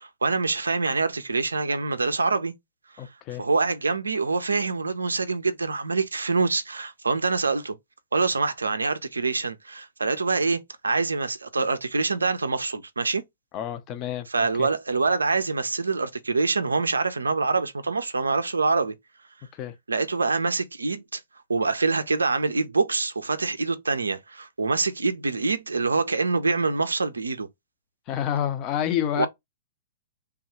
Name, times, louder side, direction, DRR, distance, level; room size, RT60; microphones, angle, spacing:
voice 1, 0.0-2.5 3.4-7.8 8.1-13.2 14.3-18.9 19.9-21.2 21.5-27.5 29.2-29.3, right 4 dB, 85° right, 0.4 m, -25 dB
voice 2, 3.0-3.4 13.5-14.7 19.5-19.7 28.1-29.3, left 10 dB, 35° left, 0.7 m, -29 dB
3.4 x 2.3 x 3.0 m
figure-of-eight pair, 115°, 0 cm